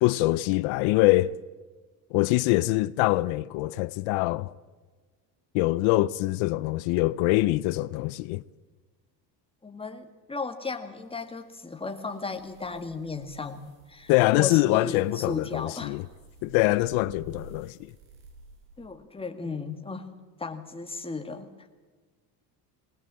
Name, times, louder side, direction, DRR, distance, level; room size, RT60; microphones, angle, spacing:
voice 1, 0.0-1.4 2.1-4.5 5.5-8.4 14.1-16.1 16.4-17.9, left 18 dB, 85° left, 0.7 m, -24 dB
voice 2, 9.6-14.1 14.4-16.0 16.7-16.8 18.8-20.1 20.4-21.5, left 4 dB, 10° left, 1.9 m, -35 dB
sound 1, 11.0-18.9, right 1 dB, 80° right, 5.1 m, -52 dB
20.0 x 20.0 x 7.6 m
cardioid pair, 125°, 46 cm